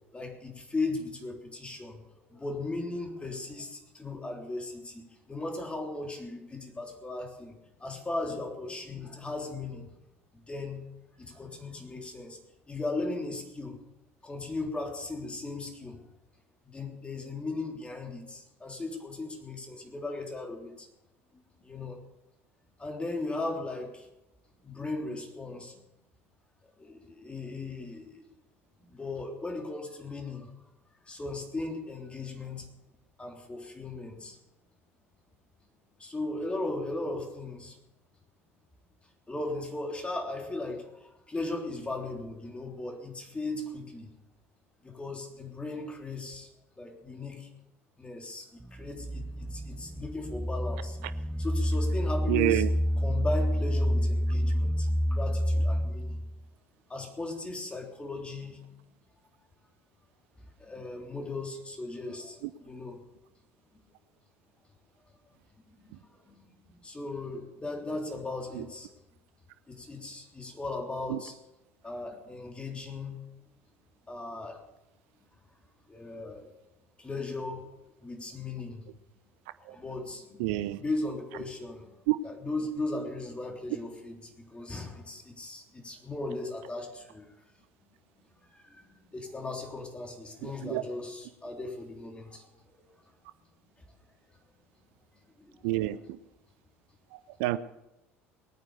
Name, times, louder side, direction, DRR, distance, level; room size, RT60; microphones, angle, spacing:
voice 1, 0.1-2.0 2.3-9.9 10.5-10.8 11.1-12.4 12.7-13.8 14.2-16.0 16.7-20.9 21.6-22.0 22.8-24.1 24.6-25.7 26.8-28.3 28.8-30.5 31.1-32.7 33.2-34.4 36.0-37.8 39.3-44.1 44.8-46.5 46.8-47.5 48.0-51.0 51.4-52.6 53.0-56.3 56.9-58.6 60.6-63.0 63.7-63.8 65.7-66.5 66.8-68.9 69.7-71.4 71.8-73.2 74.1-74.6 75.9-76.5 77.0-77.7 78.0-78.8 79.6-80.5 80.8-82.0 82.2-87.3 88.5-88.9 89.1-92.9 95.4-95.6, left 2 dB, 15° left, 3.5 m, -37 dB
sound 1, 48.6-56.4, equal, 5° right, 0.4 m, -28 dB
voice 2, 52.3-52.7 68.5-68.7 71.1-71.2 79.7-79.8 80.4-80.8 82.1-82.2 90.4-90.8 95.6-96.2 97.1-97.6, right 16 dB, 60° right, 0.6 m, -28 dB
20.0 x 9.1 x 6.8 m
figure-of-eight pair, 65°, 7 cm